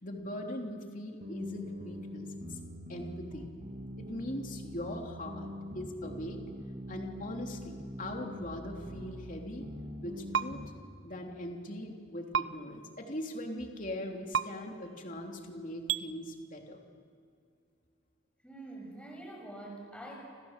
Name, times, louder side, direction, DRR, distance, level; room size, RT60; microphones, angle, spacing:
voice 1, 0.0-2.6 2.9-3.5 4.0-5.5 5.7-6.4 6.9-9.7 10.0-10.6 11.0-16.8, left 1 dB, 40° left, 2 dB, 3.3 m, -40 dB
sound 1, 1.2-10.7, equal, 35° right, 3.1 m, -43 dB
sound 2, 10.3-10.5 12.3-12.5 14.3-14.5 15.9-16.0, right 7 dB, 60° right, 0.7 m, -28 dB
voice 2, 18.4-20.2, right 1 dB, 5° left, 0 dB, 6.8 m, -45 dB
30.0 x 26.5 x 7.5 m, 2.3 s
head